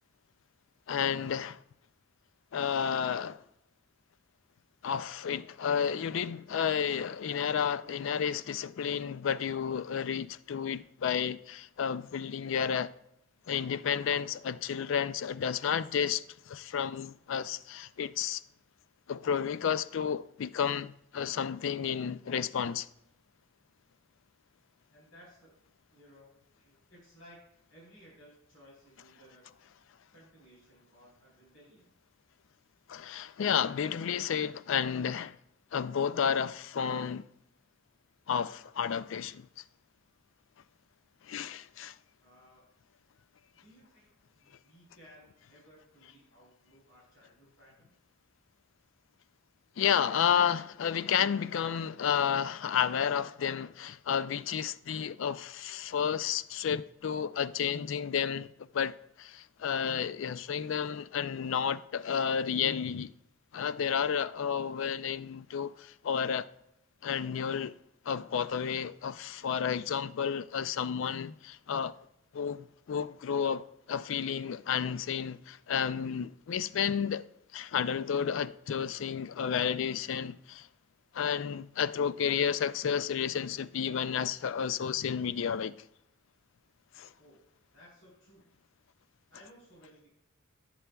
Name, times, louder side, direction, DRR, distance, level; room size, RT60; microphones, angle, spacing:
voice 1, 0.9-1.6 2.5-3.4 4.8-12.9 13.5-18.4 19.1-22.9 32.9-35.4 35.7-37.3 38.3-39.5 41.2-42.0 49.8-63.1 63.5-66.5 67.0-67.7 68.1-72.0 72.3-77.2 77.5-80.7 81.1-85.7 87.0-87.1, left 7 dB, 65° left, 0.4 m, -31 dB
voice 2, 24.9-25.5 25.9-27.4 27.7-29.5 30.1-31.9 42.2-42.6 43.5-47.9 87.2-87.4 87.7-88.5 89.3-90.1, equal, 90° left, 4.3 m, -58 dB
18.0 x 7.5 x 2.3 m
head